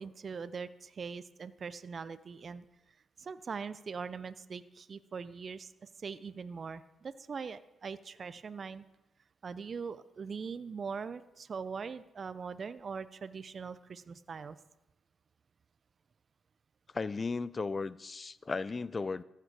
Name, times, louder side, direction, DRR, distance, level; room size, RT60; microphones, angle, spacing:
voice 1, 0.0-2.6 3.2-8.8 9.4-14.6, right 5 dB, 50° right, 14 dB, 0.5 m, -41 dB
voice 2, 16.9-19.2, left 4 dB, 40° left, 18 dB, 0.4 m, -35 dB
14.5 x 6.7 x 4.8 m, 0.95 s
hypercardioid pair, 45°, 0 cm